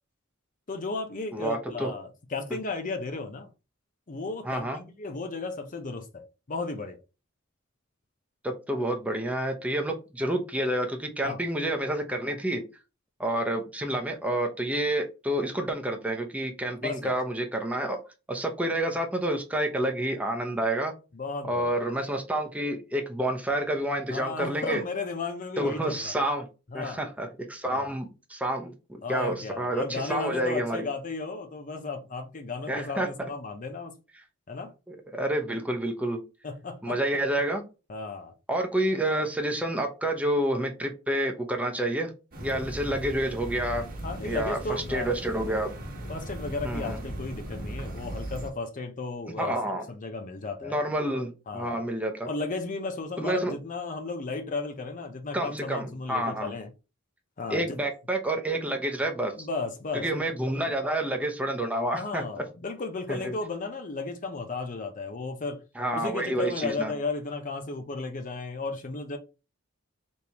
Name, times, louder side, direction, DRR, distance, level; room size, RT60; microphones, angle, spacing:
voice 1, 0.7-3.5 4.1-7.0 11.2-11.4 16.8-17.1 21.1-21.8 24.1-26.1 26.7-27.0 27.6-27.9 29.0-34.0 34.5-34.7 36.4-37.0 37.9-38.3 44.0-45.1 46.1-49.6 49.9-50.8 51.5-51.8 52.3-56.7 57.4-57.8 59.4-60.2 60.7-60.8 62.0-65.6 65.9-69.2, left 3 dB, 40° left, 0.6 m, -34 dB
voice 2, 1.3-1.9 4.4-4.8 8.4-12.6 13.2-18.0 18.3-20.9 21.5-24.8 25.6-26.5 26.7-30.9 32.7-33.1 34.9-36.2 36.8-37.6 38.5-42.1 42.4-43.8 44.2-45.7 46.6-47.0 49.4-49.9 50.6-52.3 53.2-53.5 55.3-56.5 57.5-59.5 59.9-62.2 63.1-63.3 65.8-66.9, right 1 dB, 5° right, 0.7 m, -29 dB
sound 1, 42.3-48.5, right 1 dB, 45° right, 1.2 m, -37 dB
4.3 x 3.4 x 2.9 m
head